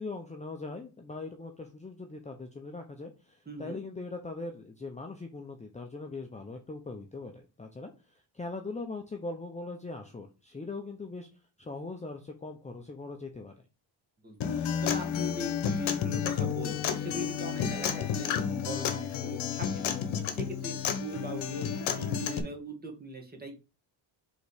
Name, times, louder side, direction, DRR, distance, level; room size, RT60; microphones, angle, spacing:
voice 1, 0.0-7.9 8.3-11.3 11.6-13.5, left 3 dB, 15° left, 4 dB, 0.8 m, -40 dB
voice 2, 3.5-3.8 14.2-14.6 14.8-19.9 20.3-23.6, right 1 dB, 20° right, 1 dB, 2.1 m, -41 dB
Acoustic guitar, 14.4-22.4, left 8 dB, 75° left, 1.1 m, -31 dB
5.2 x 4.0 x 5.0 m, 0.31 s
cardioid pair, 110°, 47 cm